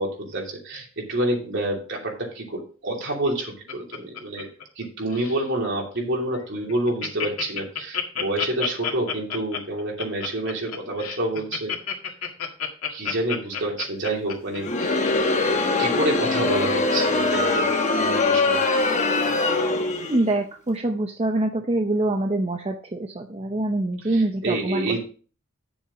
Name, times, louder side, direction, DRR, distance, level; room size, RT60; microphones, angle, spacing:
voice 1, 0.0-4.5 4.8-11.7 12.9-15.0 15.4-17.7 18.0-18.6 24.0-25.0, right 1 dB, 55° right, -1 dB, 2.9 m, -28 dB
Laughter, 3.1-4.8 5.1-5.5 5.9-6.0 6.3-6.4 6.7-15.1 15.6-15.7, left 8 dB, 90° left, 1.8 m, -30 dB
Crowd, 14.5-20.3, left 3 dB, 35° left, 1.0 m, -22 dB
voice 2, 20.1-25.0, right 2 dB, 30° right, 3 dB, 0.7 m, -25 dB
9.4 x 7.1 x 3.7 m, 0.40 s
head